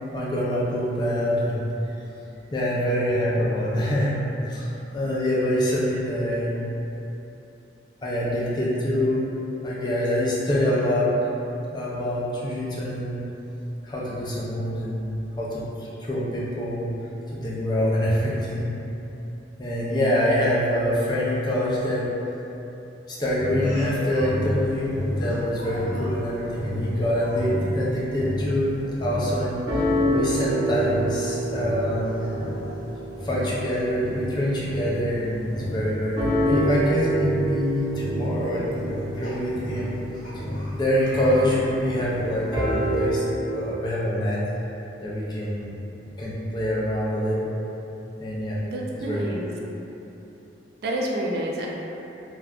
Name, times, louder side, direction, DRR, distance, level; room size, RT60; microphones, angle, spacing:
voice 1, 0.1-1.6 1.9-2.0 2.5-4.2 4.5-6.6 8.0-9.2 9.6-11.2 11.7-13.2 13.8-16.9 17.3-18.7 19.6-22.1 23.1-28.7 29.0-32.3 33.2-39.9 40.7-44.4 45.0-45.7 46.2-47.5 48.2-48.6 48.9-49.4, equal, 25° left, -6 dB, 0.4 m, -25 dB
sound 1, 23.4-26.3 26.6-35.2 35.5-43.1, equal, 25° right, 0.8 m, -28 dB
Speech, 23.6-24.4 25.2-26.2 27.1-27.5 28.7-29.0 29.4-29.5 31.1-31.2 32.0-32.9 34.2-34.3 34.7-34.8 36.6-36.7 37.4-37.6 38.7-42.0, equal, 45° left, 0.7 m, -43 dB
voice 2, 48.6-49.4 50.8-51.7, right 1 dB, 55° right, -2 dB, 0.3 m, -28 dB
2.4 x 2.2 x 3.5 m, 3.0 s
head